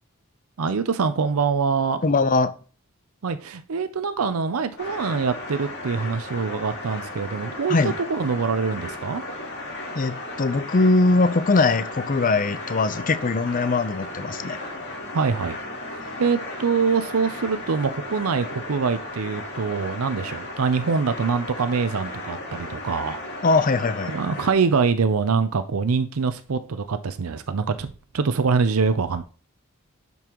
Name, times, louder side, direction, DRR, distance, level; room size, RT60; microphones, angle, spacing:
voice 1, 0.6-2.0 3.2-9.2 15.1-15.6 15.9-23.2 24.1-27.9 28.1-29.2, right 5 dB, 80° right, 0.6 m, -24 dB
voice 2, 2.0-2.5 7.7-7.9 9.9-14.6 23.4-24.1, left 3 dB, 40° left, 0.5 m, -21 dB
sound 1, 4.8-24.5, left 2 dB, 55° left, 2.3 m, -35 dB
11.0 x 5.4 x 3.0 m
head